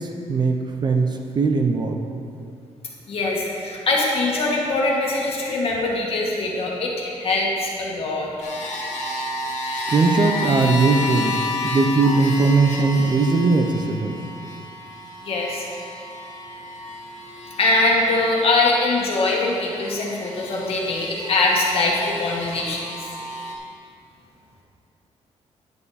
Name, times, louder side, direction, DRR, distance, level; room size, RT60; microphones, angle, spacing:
voice 1, 0.0-2.0 9.9-14.2, right 3 dB, 40° right, 4 dB, 0.8 m, -20 dB
voice 2, 3.1-8.3 15.2-15.6 17.6-22.8, left 2 dB, 55° left, -2 dB, 1.9 m, -22 dB
sound 1, 8.4-23.5, left 2 dB, 75° left, 2.1 m, -31 dB
9.7 x 9.0 x 4.3 m, 2.4 s
cardioid pair, 140°, 12 cm